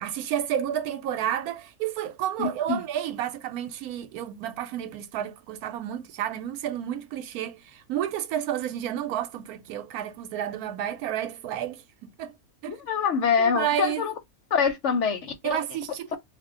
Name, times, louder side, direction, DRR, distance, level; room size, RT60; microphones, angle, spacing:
voice 1, 0.0-12.3 12.6-12.8 13.4-14.0 15.4-16.2, right 10 dB, 85° right, 1.1 m, -31 dB
voice 2, 2.4-2.8 12.7-14.1 14.5-15.6, left 6 dB, 60° left, 0.9 m, -25 dB
2.6 x 2.1 x 3.6 m
omnidirectional pair, 1.5 m